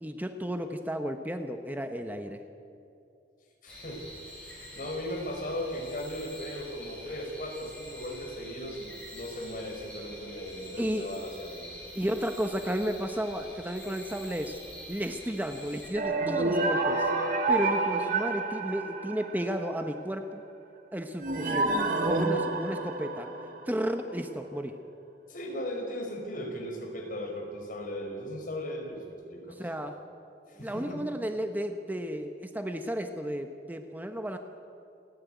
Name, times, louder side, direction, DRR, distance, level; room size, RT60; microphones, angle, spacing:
voice 1, 0.0-2.4 10.8-11.1 11.9-14.6 14.9-17.1 17.5-20.4 20.9-21.8 22.0-23.3 23.7-24.8 29.5-30.0 30.6-34.4, equal, 10° right, 6 dB, 0.9 m, -33 dB
voice 2, 3.6-4.0 4.4-11.7 25.3-29.0 29.3-29.9 30.5-31.0, equal, 55° left, 0 dB, 5.3 m, -37 dB
sound 1, 3.7-15.9, left 1 dB, 5° left, 5.6 m, -46 dB
sound 2, 15.9-19.6 21.2-23.8, right 3 dB, 50° right, 2.0 m, -29 dB
29.0 x 11.0 x 9.3 m, 2.7 s
head